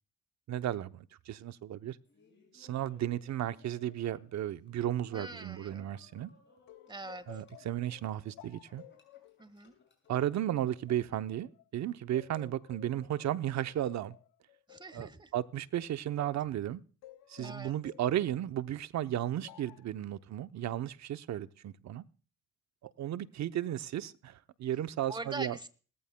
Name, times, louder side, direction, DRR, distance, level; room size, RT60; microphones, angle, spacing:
voice 1, 0.5-2.0 2.5-6.3 7.3-8.8 10.1-14.1 14.9-16.8 17.3-22.0 22.8-25.6, right 12 dB, 65° right, 13 dB, 0.8 m, -34 dB
Laughter, 2.0-10.1, left 3 dB, 40° left, 6.1 m, -65 dB
voice 2, 5.1-5.9 6.9-7.4 9.4-9.8 14.7-15.3 17.4-17.7 25.1-25.7, right 2 dB, 15° right, 14 dB, 1.5 m, -43 dB
sound 1, 6.7-11.7 12.1-16.5 17.0-18.5 19.4-19.9, left 15 dB, 90° left, 0.9 m, -55 dB
19.5 x 14.5 x 2.2 m, 0.38 s
cardioid pair, 80°, 30 cm